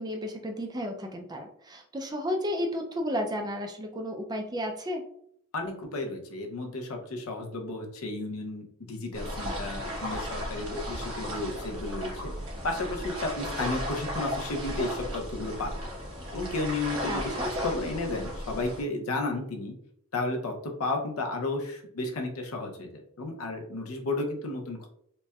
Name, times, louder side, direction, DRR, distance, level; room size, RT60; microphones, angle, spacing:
voice 1, 0.0-5.1 17.1-17.5, equal, 20° right, 3 dB, 0.4 m, -33 dB
voice 2, 5.5-12.3 12.6-15.7 16.3-19.7 20.1-24.9, left 2 dB, 85° left, 3 dB, 0.7 m, -33 dB
sound 1, 9.1-18.8, equal, 90° right, 1.1 m, -35 dB
4.1 x 2.1 x 2.3 m, 0.68 s
head